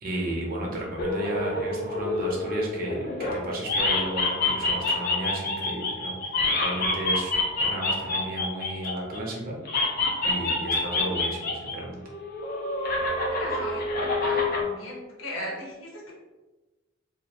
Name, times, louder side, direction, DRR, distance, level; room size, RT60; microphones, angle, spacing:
voice 1, 0.0-6.1 6.6-9.6 10.2-12.0, right 1 dB, 45° right, -2 dB, 0.5 m, -33 dB
sound 1, 1.0-3.4 3.6-9.2 9.6-11.7 12.0-14.6, left 2 dB, 50° left, 0.4 m, -27 dB
voice 2, 13.4-16.1, left 1 dB, 85° left, -3 dB, 0.8 m, -37 dB
2.2 x 2.0 x 2.8 m, 1.1 s
head